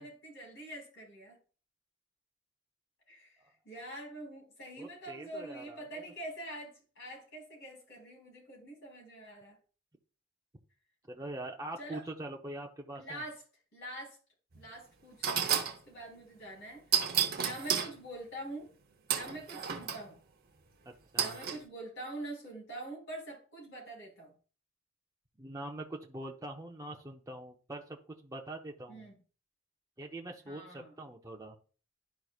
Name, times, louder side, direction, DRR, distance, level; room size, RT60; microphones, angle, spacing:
voice 1, 0.0-1.4 3.1-3.4 3.7-9.6 11.8-12.1 13.0-13.4 13.7-14.2 14.6-16.8 17.4-18.7 19.1-20.2 21.2-24.3 28.9-29.2 30.5-30.9, right 1 dB, 55° left, -1 dB, 3.6 m, -45 dB
voice 2, 4.8-6.0 11.1-13.2 20.9-21.4 25.4-28.0 28.2-29.1 30.0-31.5, right 1 dB, 15° right, 0 dB, 0.6 m, -43 dB
sound 1, 14.5-14.7 15.2-15.8 16.9-17.9 19.1-20.0 21.2-21.6, right 8 dB, 45° right, 0.8 m, -31 dB
11.5 x 4.7 x 2.4 m, 0.38 s
head